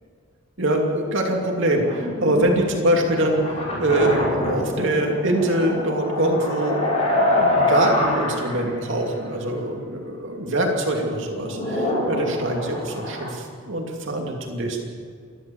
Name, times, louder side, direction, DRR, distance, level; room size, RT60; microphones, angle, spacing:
voice 1, 0.6-14.8, right 1 dB, 60° right, 0 dB, 2.8 m, -24 dB
sound 1, 1.8-8.8 9.2-9.3 11.1-13.3, left 1 dB, 30° left, 5.4 m, -25 dB
30.0 x 12.0 x 7.2 m, 2.1 s
head